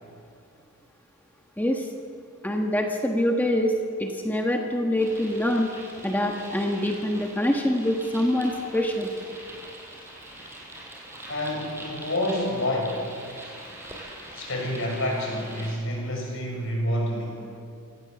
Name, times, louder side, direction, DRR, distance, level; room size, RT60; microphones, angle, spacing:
voice 1, 2.4-3.7 4.0-5.7 6.0-9.1, left 1 dB, 10° left, 2 dB, 1.4 m, -25 dB
sound 1, 5.0-15.7, right 1 dB, 10° right, 5.1 m, -43 dB
voice 2, 11.3-13.6 14.3-17.5, left 1 dB, 60° left, 0 dB, 6.6 m, -29 dB
27.0 x 17.0 x 7.1 m, 2.4 s
head